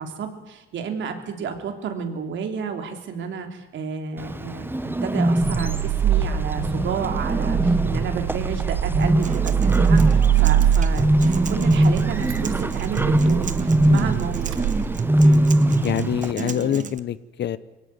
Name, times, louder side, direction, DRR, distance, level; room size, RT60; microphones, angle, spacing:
voice 1, 0.0-4.7 5.0-14.7, right 5 dB, 70° right, 5 dB, 3.4 m, -31 dB
Bird, 4.2-16.3, right 1 dB, 10° right, 1.2 m, -22 dB
Car / Engine starting, 5.4-15.5, right 9 dB, 90° right, 1.7 m, -24 dB
Acoustic guitar, 9.0-17.0, right 6 dB, 40° right, 1.1 m, -33 dB
voice 2, 15.8-17.6, left 11 dB, 60° left, 17 dB, 0.9 m, -25 dB
22.5 x 17.5 x 9.5 m, 1.1 s
cardioid pair, 90°, 20 cm